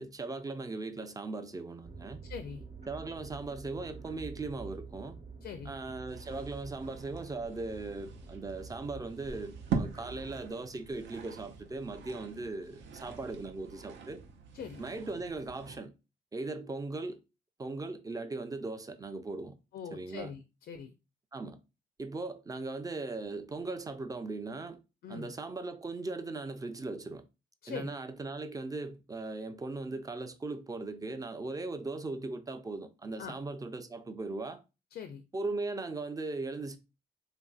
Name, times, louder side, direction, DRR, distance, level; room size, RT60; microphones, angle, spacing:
voice 1, 0.0-2.2 2.9-5.2 5.7-14.2 14.8-15.9 16.3-17.2 17.6-19.6 19.9-20.3 21.3-21.6 22.0-24.8 25.1-27.2 27.7-34.6 35.3-36.8, right 3 dB, 20° right, 0.4 m, -38 dB
sound 1, 1.8-10.5, right 4 dB, 35° right, 0.9 m, -48 dB
voice 2, 2.3-2.6 5.4-5.7 14.5-14.9 19.7-20.9 25.0-25.3 27.6-27.9 33.2-33.4 34.9-35.2, left 7 dB, 55° left, 0.4 m, -42 dB
sound 2, 6.1-15.8, right 5 dB, 70° right, 0.6 m, -42 dB
2.9 x 2.6 x 2.3 m
cardioid pair, 90°, 20 cm